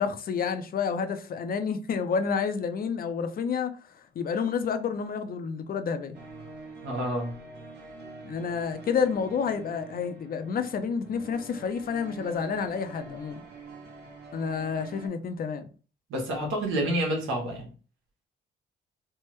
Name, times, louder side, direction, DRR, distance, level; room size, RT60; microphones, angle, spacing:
voice 1, 0.0-3.8 4.2-6.2 8.2-13.4 14.3-15.7, left 6 dB, 50° left, 0.5 m, -29 dB
sound 1, 6.1-15.1, right 3 dB, 55° right, 1.0 m, -46 dB
voice 2, 6.8-7.3 16.1-17.7, right 1 dB, 85° right, 1.2 m, -28 dB
3.3 x 2.1 x 3.0 m
cardioid pair, 90°, 20 cm